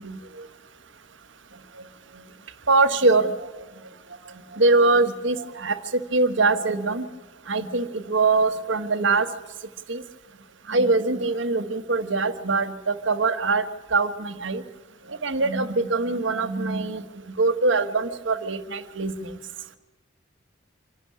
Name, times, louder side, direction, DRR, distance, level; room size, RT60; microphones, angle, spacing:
voice 1, 2.7-3.5 4.5-5.8 6.1-7.0 7.5-9.3 9.9-10.0 10.7-13.7 13.9-14.6 15.2-17.0 17.4-19.1, right 3 dB, 75° right, 9 dB, 1.4 m, -22 dB
26.5 x 12.0 x 8.8 m, 1.2 s
head